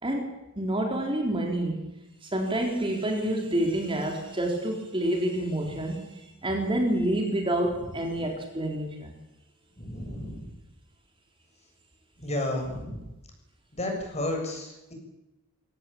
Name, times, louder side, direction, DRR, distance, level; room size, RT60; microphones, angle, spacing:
voice 1, 0.0-1.8 2.2-9.2, right 1 dB, 25° right, 2 dB, 4.1 m, -28 dB
voice 2, 9.8-10.5 12.2-13.1 13.7-14.9, left 1 dB, 30° left, 3 dB, 7.2 m, -32 dB
24.0 x 17.5 x 8.8 m, 0.97 s
head